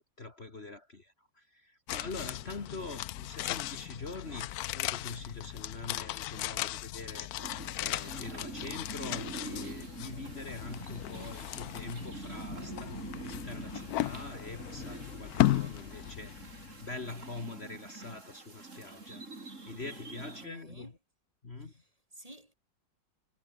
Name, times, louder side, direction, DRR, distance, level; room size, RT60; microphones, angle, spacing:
voice 1, 0.0-19.2 19.6-20.9 21.4-21.8, left 3 dB, 35° left, 2.3 m, -44 dB
sound 1, 1.9-17.1 17.3-17.4, left 15 dB, 70° left, 0.9 m, -36 dB
sound 2, 7.4-20.5, right 3 dB, 40° right, 4.0 m, -45 dB
voice 2, 20.2-20.9 21.6-22.5, right 1 dB, 20° right, 3.9 m, -53 dB
omnidirectional pair, 2.0 m